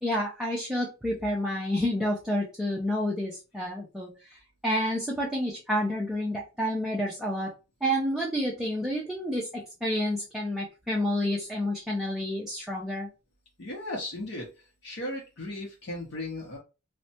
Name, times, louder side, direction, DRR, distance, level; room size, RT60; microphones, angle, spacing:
voice 1, 0.0-4.1 4.6-7.5 7.8-13.1, equal, 5° right, -4 dB, 0.5 m, -29 dB
voice 2, 13.6-14.5 14.8-16.6, left 1 dB, 55° left, -2 dB, 0.8 m, -36 dB
3.2 x 2.1 x 2.8 m, 0.29 s
head